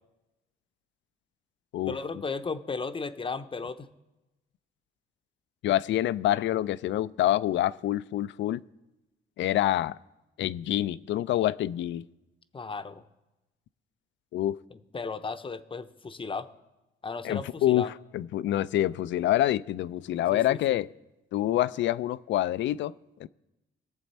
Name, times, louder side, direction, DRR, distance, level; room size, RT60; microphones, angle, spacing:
voice 1, 1.9-3.9 12.5-13.0 14.7-16.5 17.0-17.9 20.3-20.8, left 4 dB, 25° left, 0.7 m, -35 dB
voice 2, 5.6-8.6 9.4-10.0 10.4-12.1 14.3-14.6 17.2-20.9 21.3-22.9 23.2-23.3, left 13 dB, 70° left, 0.4 m, -26 dB
20.5 x 7.0 x 4.3 m
cardioid pair, 90°, 20 cm